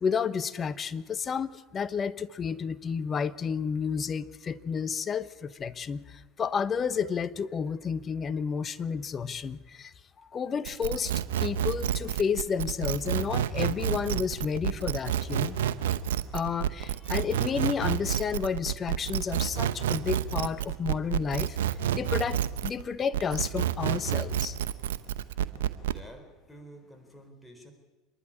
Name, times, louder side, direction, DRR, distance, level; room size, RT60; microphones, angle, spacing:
voice 1, 0.0-11.1 11.4-15.6 16.3-21.6 21.9-24.6, left 6 dB, 35° left, 15 dB, 1.0 m, -31 dB
sound 1, 10.6-22.8 23.1-26.0, right 10 dB, 85° right, 0.9 m, -29 dB
voice 2, 25.6-27.7, right 1 dB, 5° left, 4 dB, 4.1 m, -50 dB
26.5 x 11.0 x 10.0 m, 1.2 s
hypercardioid pair, 85°, 0 cm